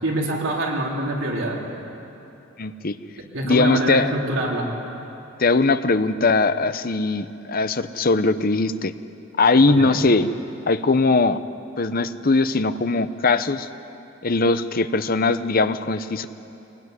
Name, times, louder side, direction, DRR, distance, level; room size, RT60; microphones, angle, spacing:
voice 1, 0.0-1.6 3.3-4.7 9.7-10.0, right 1 dB, 85° right, -2 dB, 4.2 m, -25 dB
voice 2, 2.6-3.0 3.4-4.1 5.4-8.9 9.4-10.3 10.7-11.4 11.8-13.7 14.2-16.3, left 3 dB, 45° left, 11 dB, 0.8 m, -20 dB
23.5 x 18.0 x 9.8 m, 2.9 s
head